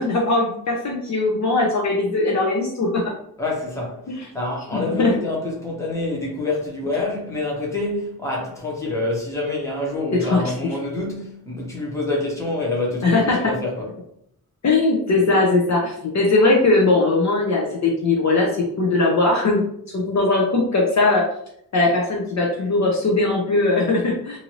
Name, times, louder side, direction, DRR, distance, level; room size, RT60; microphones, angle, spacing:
voice 1, 0.0-3.0 4.7-5.1 10.2-10.5 13.0-13.5 14.6-19.6 19.9-21.2 21.7-24.4, left 2 dB, 50° left, 0.6 m, -19 dB
voice 2, 3.4-4.0 4.3-13.9, left 2 dB, 10° left, 0.8 m, -26 dB
2.7 x 2.5 x 3.0 m
wide cardioid pair, 150°, 37 cm